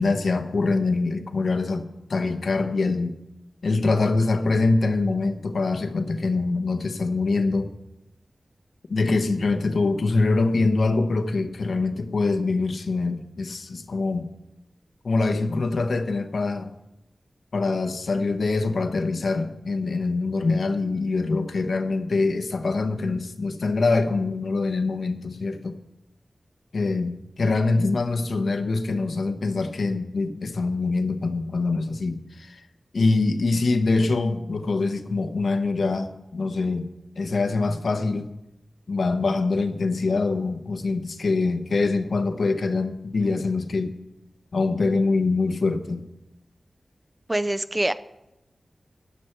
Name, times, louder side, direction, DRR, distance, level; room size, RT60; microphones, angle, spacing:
voice 1, 0.0-3.1 3.6-7.7 8.9-14.3 15.0-16.7 17.5-25.7 26.7-32.6 32.9-36.9 37.2-38.3 38.9-43.9 44.5-46.0, left 3 dB, 80° left, 1.0 m, -24 dB
voice 2, 47.3-47.9, right 1 dB, 20° right, 0.4 m, -24 dB
13.0 x 10.5 x 4.5 m
wide cardioid pair, 105°, 0 cm